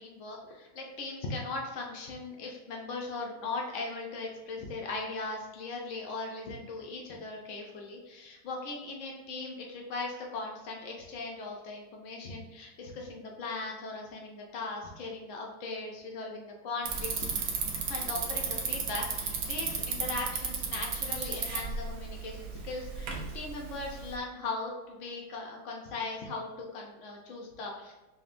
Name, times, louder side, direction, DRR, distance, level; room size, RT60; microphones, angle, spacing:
voice 1, 0.0-17.3 17.9-27.9, left 3 dB, 70° left, 0 dB, 0.7 m, -39 dB
Bicycle, 16.8-24.2, right 5 dB, 65° right, 0.8 m, -34 dB
6.0 x 2.1 x 2.5 m, 1.1 s
omnidirectional pair, 2.0 m